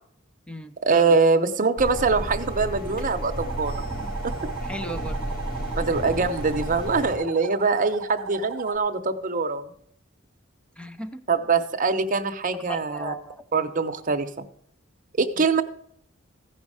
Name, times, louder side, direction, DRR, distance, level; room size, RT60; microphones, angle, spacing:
voice 1, 0.8-3.8 4.2-4.3 5.7-9.7 11.3-13.1 13.5-14.5 15.2-15.6, right 4 dB, 40° right, 6 dB, 0.9 m, -23 dB
sound 1, 1.8-7.2, right 1 dB, 50° left, 3.9 m, -32 dB
sound 2, 3.4-8.8, right 5 dB, 80° right, 0.8 m, -37 dB
voice 2, 4.6-5.2 10.8-11.2 12.7-13.4 15.4-15.5, equal, 5° left, 8 dB, 0.7 m, -36 dB
15.5 x 5.4 x 4.9 m, 0.65 s
head